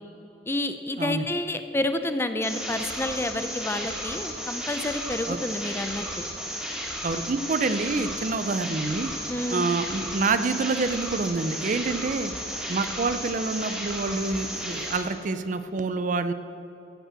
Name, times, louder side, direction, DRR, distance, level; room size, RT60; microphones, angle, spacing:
voice 1, 0.5-6.2 9.3-9.7, left 1 dB, 15° left, 9 dB, 0.5 m, -29 dB
sound 1, 2.4-15.0, equal, 5° right, 2.1 m, -34 dB
voice 2, 7.0-9.1 9.5-16.3, right 3 dB, 45° right, 11 dB, 0.5 m, -27 dB
15.0 x 5.4 x 7.6 m, 3.0 s
head